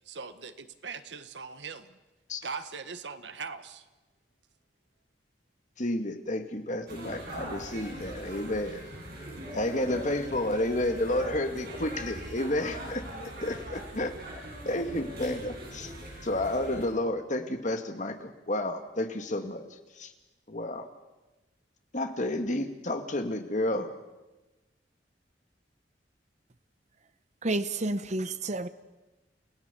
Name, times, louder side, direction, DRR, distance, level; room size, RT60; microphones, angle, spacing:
voice 1, 0.1-2.0 2.4-3.8, right 5 dB, 75° right, 11 dB, 1.4 m, -40 dB
voice 2, 5.8-8.8 9.5-13.0 13.4-14.1 14.7-15.9 16.2-20.1 20.5-20.9 21.9-23.9, left 1 dB, 45° left, 7 dB, 1.9 m, -31 dB
sound 1, 6.9-16.8, right 1 dB, 55° right, 7.3 m, -41 dB
voice 3, 27.4-28.7, right 2 dB, 40° right, 12 dB, 0.9 m, -30 dB
29.5 x 16.5 x 6.9 m, 1.1 s
head